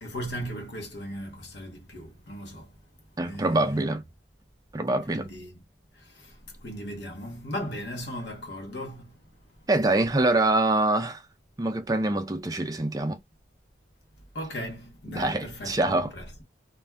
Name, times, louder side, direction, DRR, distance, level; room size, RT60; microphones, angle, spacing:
voice 1, 0.0-2.8 3.2-3.8 5.1-5.6 5.9-9.2 14.3-16.4, equal, 75° left, 0.9 m, -37 dB
voice 2, 3.2-4.0 4.7-5.3 9.7-11.2 11.6-13.2 15.1-16.1, right 2 dB, 20° right, 0.4 m, -25 dB
2.5 x 2.2 x 3.2 m
head